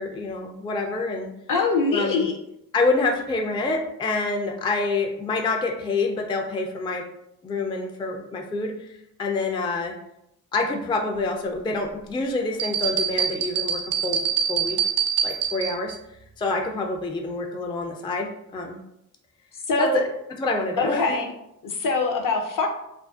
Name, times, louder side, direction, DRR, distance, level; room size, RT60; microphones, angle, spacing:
voice 1, 0.0-1.3 1.9-2.3 2.7-7.0 7.4-8.9 9.2-9.9 10.5-14.2 14.5-14.8 15.2-16.0 16.4-18.8 19.8-19.9 20.4-21.2, left 3 dB, 15° left, 2 dB, 0.3 m, -27 dB
voice 2, 1.5-2.4 19.7-20.0 20.8-21.3 21.6-22.7, left 3 dB, 60° left, 2 dB, 0.6 m, -23 dB
sound 1, 12.6-15.9, right 8 dB, 65° right, 0.5 m, -25 dB
2.5 x 2.3 x 2.3 m, 0.81 s
cardioid pair, 55°, 38 cm